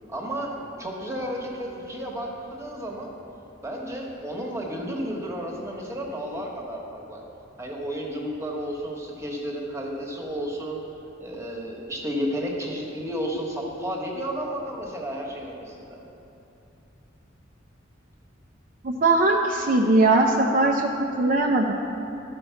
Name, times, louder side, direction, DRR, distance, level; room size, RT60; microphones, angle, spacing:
voice 1, 0.1-2.3 2.6-3.1 3.6-7.2 7.6-10.8 11.2-16.0, equal, 15° right, -1 dB, 1.2 m, -32 dB
voice 2, 18.8-21.7, right 2 dB, 45° right, 1 dB, 0.5 m, -20 dB
13.0 x 5.3 x 5.7 m, 2.9 s
head